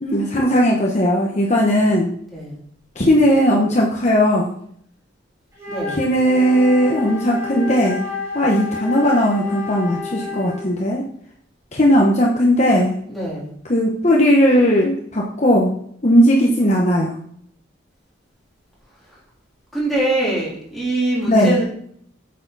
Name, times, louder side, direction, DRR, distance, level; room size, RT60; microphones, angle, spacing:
voice 1, 0.0-2.1 2.9-4.5 5.9-8.0 8.3-11.0 11.7-12.9 13.7-15.7 16.0-17.1 21.3-21.6, equal, 35° left, -1 dB, 1.0 m, -17 dB
Wind instrument woodwind instrument, 5.5-10.8, left 4 dB, 15° right, 2.7 m, -30 dB
voice 2, 5.7-6.0 13.1-13.5 19.7-21.6, right 1 dB, ahead, -7 dB, 3.5 m, -23 dB
8.7 x 6.6 x 4.0 m, 0.65 s
head